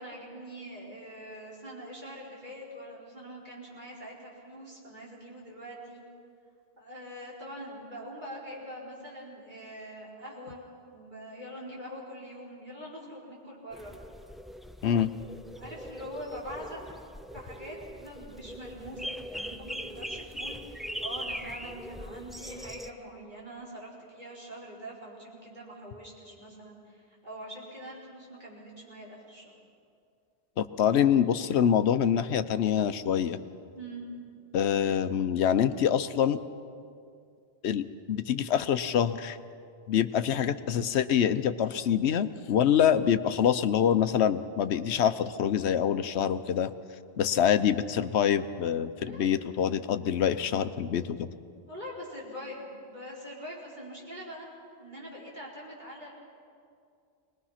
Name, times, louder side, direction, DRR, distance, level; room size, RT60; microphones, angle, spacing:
voice 1, 0.0-6.0 6.8-10.6 10.9-13.9 15.6-16.8 17.3-29.5 33.7-34.0 49.1-49.3 51.7-54.5 54.8-56.1, equal, 45° right, -5 dB, 4.8 m, -43 dB
sound 1, 13.7-22.9, equal, ahead, 0.3 m, -41 dB
voice 2, 30.6-33.4 34.5-36.4 37.6-39.4 39.9-46.7 47.2-51.3, left 9 dB, 75° left, 12 dB, 1.0 m, -25 dB
22.5 x 20.0 x 5.8 m, 2.4 s
omnidirectional pair, 1.1 m